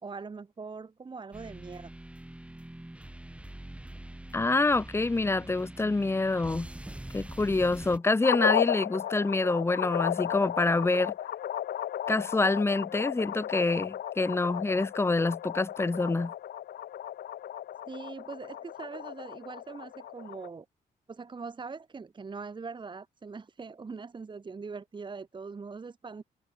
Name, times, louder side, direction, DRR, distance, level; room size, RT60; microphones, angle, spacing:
voice 1, 0.0-1.9 17.9-20.6 21.1-26.2, right 4 dB, 30° right, 1.4 m, -42 dB
sound 1, 1.3-8.0, right 1 dB, 5° right, 2.8 m, -44 dB
voice 2, 4.3-6.7 7.1-11.1 12.1-16.3, left 3 dB, 15° left, 0.8 m, -26 dB
sound 2, 8.2-20.5, left 11 dB, 85° left, 2.0 m, -34 dB
cardioid pair, 125°, 16 cm